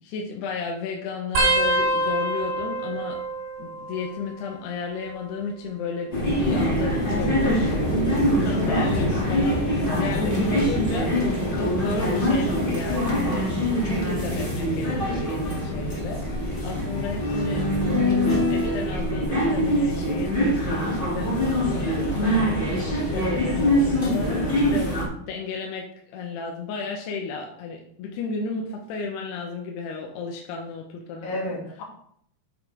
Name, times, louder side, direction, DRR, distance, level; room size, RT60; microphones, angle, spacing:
voice 1, 0.1-3.2 3.6-8.0 8.4-13.5 13.8-16.3 16.6-17.6 18.0-22.5 23.1-31.5, left 4 dB, 70° left, 1 dB, 2.7 m, -33 dB
sound 1, 1.4-4.5 4.8-5.4 6.4-7.9 8.5-8.8 10.1-10.4 11.9-12.0, right 1 dB, 55° right, 3.7 m, -28 dB
sound 2, 6.1-25.0, equal, 25° left, 1.1 m, -24 dB
voice 2, 8.5-9.2 9.8-10.5 16.6-17.1 31.2-31.8, left 2 dB, 55° left, -2 dB, 3.8 m, -34 dB
8.7 x 8.4 x 3.5 m, 0.64 s
omnidirectional pair, 5.5 m